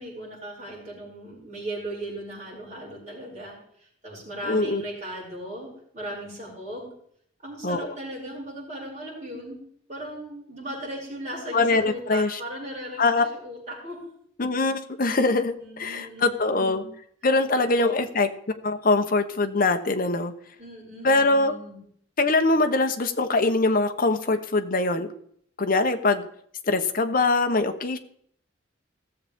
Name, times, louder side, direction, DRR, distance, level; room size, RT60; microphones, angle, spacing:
voice 1, 0.0-3.5 4.0-5.7 5.9-6.9 7.4-9.6 9.9-14.0 15.6-16.8 17.5-18.0 20.6-21.8, right 1 dB, 35° right, -5 dB, 5.6 m, -37 dB
voice 2, 4.4-4.8 7.6-8.0 11.5-12.4 13.0-13.3 14.4-16.8 17.2-18.3 18.6-20.3 21.0-21.5 22.2-25.1 25.6-26.3 26.7-28.0, left 3 dB, 45° left, 6 dB, 0.8 m, -23 dB
17.0 x 7.1 x 3.5 m, 0.66 s
head